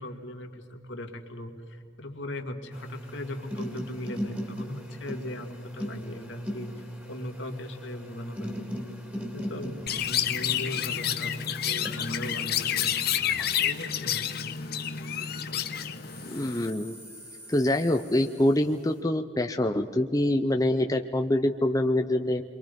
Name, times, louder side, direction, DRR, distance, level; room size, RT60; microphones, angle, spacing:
voice 1, 0.0-6.7 7.1-8.8 9.3-11.3 11.6-12.9 13.6-14.5 15.4-15.8, left 1 dB, 65° left, 4 dB, 2.2 m, -39 dB
sound 1, 2.7-15.4 15.9-18.8, equal, 10° right, 2.5 m, -40 dB
Chirp tweet, 9.9-16.7, left 9 dB, 50° left, 1.0 m, -29 dB
voice 2, 16.2-17.0 17.5-22.4, left 1 dB, 15° left, 5 dB, 0.6 m, -25 dB
29.0 x 23.5 x 5.3 m, 2.3 s
head